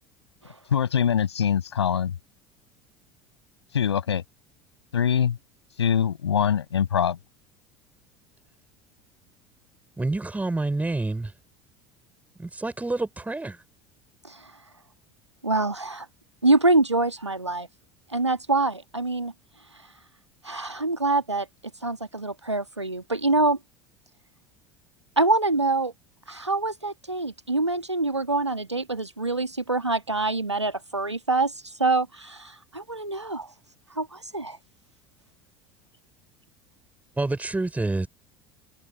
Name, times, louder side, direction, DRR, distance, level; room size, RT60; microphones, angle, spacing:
voice 1, 0.7-2.1 3.7-4.2 4.9-5.4 5.8-7.2, left 8 dB, 75° left, 6.7 m, -23 dB
voice 2, 10.0-11.3 12.4-13.6 37.2-38.1, right 2 dB, 10° right, 5.8 m, -27 dB
voice 3, 15.4-16.1 16.4-17.7 18.1-19.3 20.4-21.5 21.8-23.6 25.2-25.9 26.3-31.5 31.8-33.5 34.0-34.6, right 2 dB, 90° right, 1.8 m, -25 dB
figure-of-eight pair, 70°, 14 cm